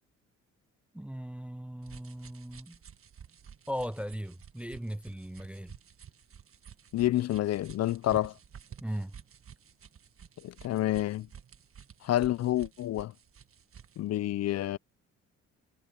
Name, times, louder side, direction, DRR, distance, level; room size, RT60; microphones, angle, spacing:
voice 1, 0.9-2.8 3.7-5.7 8.1-8.2 8.8-9.2, equal, 5° right, 0.4 m, -38 dB
sound 1, 1.8-14.0, right 8 dB, 45° right, 1.7 m, -52 dB
voice 2, 6.9-8.3 10.4-11.3 12.0-13.1 14.0-14.8, left 14 dB, 60° left, 0.5 m, -28 dB
cardioid pair, 90°, 30 cm